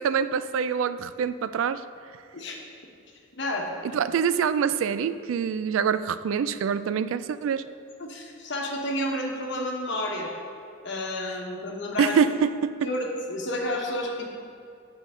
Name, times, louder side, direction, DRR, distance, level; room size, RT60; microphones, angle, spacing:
voice 1, 0.0-1.8 3.9-7.6 12.0-12.9, right 7 dB, 90° right, 13 dB, 0.3 m, -25 dB
voice 2, 3.4-3.9 8.0-10.3 10.8-12.2 12.8-14.3, left 1 dB, 65° left, 0 dB, 1.1 m, -30 dB
8.2 x 6.8 x 3.7 m, 2.3 s
head